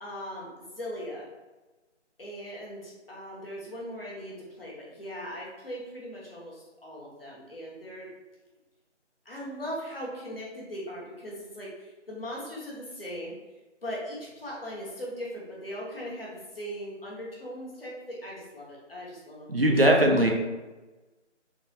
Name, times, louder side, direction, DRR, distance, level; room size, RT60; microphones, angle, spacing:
voice 1, 0.0-1.3 2.2-8.1 9.2-13.4 13.8-20.0, equal, 50° left, -4 dB, 1.1 m, -39 dB
voice 2, 19.5-20.3, right 1 dB, 55° right, 1 dB, 0.5 m, -20 dB
3.9 x 2.3 x 2.7 m, 1.2 s
figure-of-eight pair, 180°, 36 cm